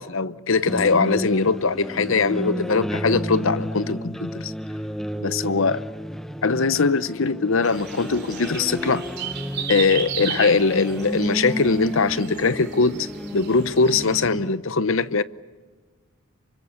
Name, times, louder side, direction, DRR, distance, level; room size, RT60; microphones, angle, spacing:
voice 1, 0.0-4.5 5.2-5.8 6.4-9.1 9.7-15.2, left 4 dB, 60° left, 0.8 m, -21 dB
sound 1, 0.6-14.5, equal, ahead, 0.8 m, -32 dB
sound 2, 7.6-14.3, right 8 dB, 50° right, 3.1 m, -35 dB
28.5 x 25.0 x 7.0 m
head